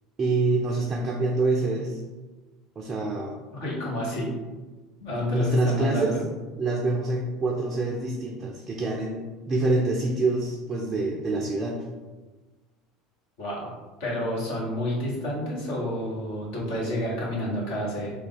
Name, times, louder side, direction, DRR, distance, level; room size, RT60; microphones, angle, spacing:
voice 1, 0.2-2.0 2.8-3.4 5.2-6.1 6.6-11.8, right 2 dB, 30° right, 0 dB, 0.4 m, -26 dB
voice 2, 3.6-4.3 5.0-6.2 13.4-13.7 14.0-18.1, equal, 60° left, -4 dB, 1.1 m, -29 dB
3.3 x 2.3 x 3.7 m, 1.2 s
figure-of-eight pair, 70°, 0 cm